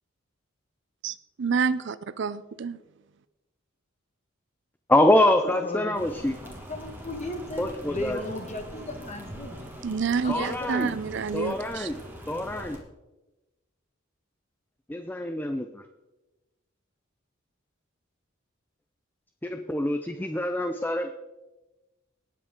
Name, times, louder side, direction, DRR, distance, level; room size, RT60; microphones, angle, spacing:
voice 1, 1.0-2.8 9.8-11.9, right 5 dB, 60° right, 16 dB, 0.5 m, -28 dB
voice 2, 4.9-6.4 7.6-8.2 10.3-10.9 11.3-12.0 12.3-12.8 14.9-15.8 19.4-21.1, left 1 dB, 10° left, 8 dB, 0.5 m, -25 dB
voice 3, 5.4-9.7 10.2-11.1 12.3-12.4, left 1 dB, 35° left, 5 dB, 1.5 m, -37 dB
sound 1, 5.9-12.8, equal, 10° right, 1.9 m, -42 dB
19.0 x 7.6 x 3.7 m, 1.1 s
head